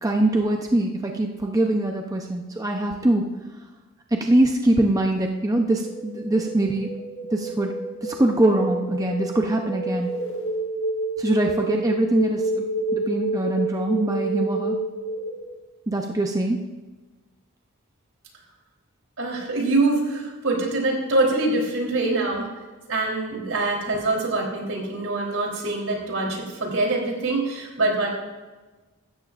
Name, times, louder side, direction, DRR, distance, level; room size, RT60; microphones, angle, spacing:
voice 1, 0.0-3.2 4.1-6.9 7.3-7.7 8.0-10.1 11.2-12.7 12.9-14.7 15.9-16.6, right 1 dB, 15° right, 2 dB, 0.7 m, -23 dB
sound 1, 5.8-15.5, right 2 dB, 60° left, 1.7 m, -29 dB
voice 2, 19.2-22.5 22.9-28.1, right 2 dB, 80° right, 0 dB, 3.5 m, -24 dB
16.0 x 13.0 x 2.5 m, 1.2 s
head